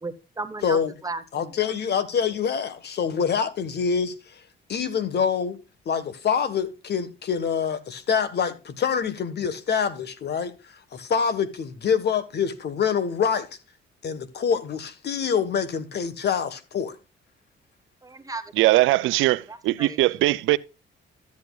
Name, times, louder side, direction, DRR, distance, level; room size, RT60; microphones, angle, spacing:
voice 1, 0.0-1.5 18.0-18.5 19.5-20.2, right 3 dB, 15° right, 1.0 m, -35 dB
voice 2, 0.6-0.9 1.3-4.4 4.7-5.6 5.8-13.5 14.0-17.0, left 7 dB, 55° left, 1.3 m, -26 dB
voice 3, 18.6-20.6, right 17 dB, 90° right, 0.4 m, -20 dB
13.0 x 8.5 x 2.3 m
cardioid pair, 90°, 20 cm